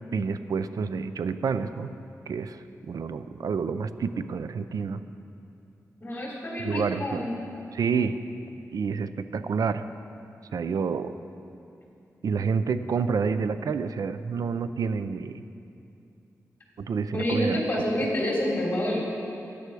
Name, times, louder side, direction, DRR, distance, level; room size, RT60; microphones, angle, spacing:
voice 1, 0.1-1.9 2.3-5.0 6.6-7.3 7.7-8.2 8.7-9.8 10.5-11.1 12.2-15.4 16.8-17.6, right 5 dB, 75° right, 12 dB, 0.5 m, -28 dB
voice 2, 6.0-7.3 17.1-19.0, left 1 dB, 25° left, -3 dB, 3.3 m, -28 dB
13.5 x 10.0 x 4.8 m, 2.7 s
wide cardioid pair, 110°, 6 cm